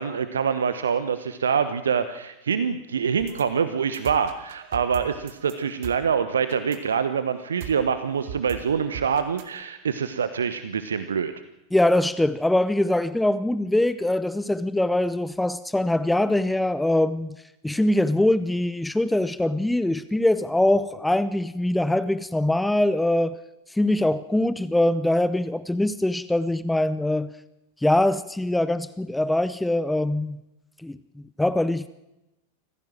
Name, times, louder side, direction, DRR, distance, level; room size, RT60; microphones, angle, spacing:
voice 1, 0.0-11.3, right 6 dB, 70° right, 12 dB, 1.1 m, -25 dB
sound 1, 3.2-9.6, right 9 dB, 50° right, 2.3 m, -41 dB
voice 2, 11.7-17.4 17.6-23.4 23.7-27.3 27.8-30.4 30.8-31.9, left 1 dB, 5° left, 15 dB, 0.7 m, -23 dB
25.5 x 15.5 x 7.5 m, 0.92 s
figure-of-eight pair, 90°, 0 cm